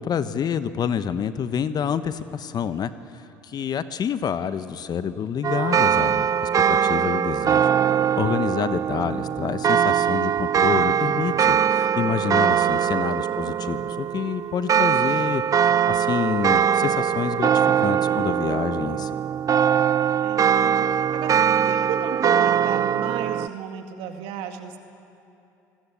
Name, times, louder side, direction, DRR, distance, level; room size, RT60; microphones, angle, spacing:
voice 1, 0.0-2.9 3.5-6.3 6.7-7.7 8.2-11.6 12.0-17.5 17.8-19.1, left 7 dB, 45° left, 13 dB, 1.1 m, -27 dB
sound 1, 5.4-23.5, right 8 dB, 35° right, 0.5 m, -22 dB
voice 2, 8.9-9.3 20.1-24.8, right 8 dB, 70° right, 6 dB, 2.0 m, -34 dB
26.0 x 19.5 x 8.5 m, 2.7 s
hypercardioid pair, 65°, 10 cm